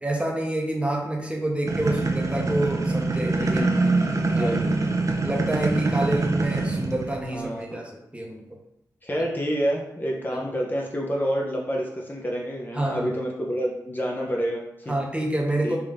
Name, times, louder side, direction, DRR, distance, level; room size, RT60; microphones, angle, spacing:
voice 1, 0.0-3.6 4.3-4.6 5.2-8.5 10.3-10.4 12.7-13.1 14.9-15.8, right 1 dB, 15° right, 0 dB, 0.8 m, -28 dB
sound 1, 1.7-7.3, right 3 dB, 45° right, 0.5 m, -24 dB
voice 2, 3.4-3.9 4.2-4.7 7.3-7.8 9.0-15.0 15.6-15.8, equal, 25° left, -2 dB, 0.7 m, -28 dB
3.5 x 2.7 x 3.5 m, 0.84 s
cardioid pair, 55°, 7 cm